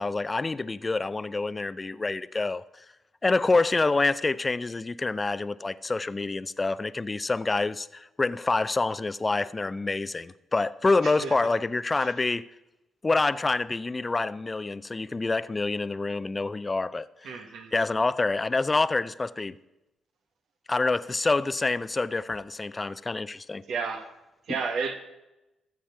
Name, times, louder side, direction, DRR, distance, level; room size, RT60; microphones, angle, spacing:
voice 1, 0.0-2.6 3.2-12.5 13.0-17.4 17.7-19.6 20.7-23.6, left 3 dB, 30° left, 0.5 m, -27 dB
voice 2, 11.0-11.4 11.9-12.1 17.2-17.7 23.7-24.1 24.5-24.9, right 5 dB, 70° right, 1.5 m, -32 dB
14.5 x 7.3 x 5.7 m
hypercardioid pair, 50°, 0 cm